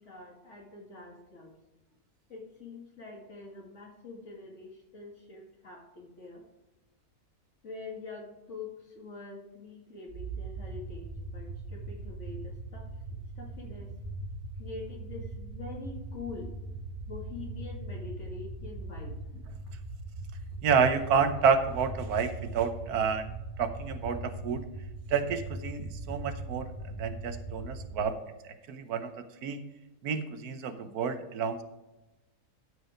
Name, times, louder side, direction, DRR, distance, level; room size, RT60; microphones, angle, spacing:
voice 1, 0.0-1.5 2.3-6.5 7.6-12.9 13.4-13.9 14.6-16.6 17.1-19.2, left 3 dB, 50° left, 0 dB, 2.4 m, -45 dB
sound 1, 10.1-28.0, right 2 dB, 40° right, 1.7 m, -40 dB
voice 2, 20.6-23.3 23.6-24.7 25.1-28.2 28.7-29.6 30.0-31.6, right 6 dB, 75° right, 9 dB, 1.3 m, -29 dB
12.5 x 4.8 x 4.9 m, 1.0 s
omnidirectional pair, 1.6 m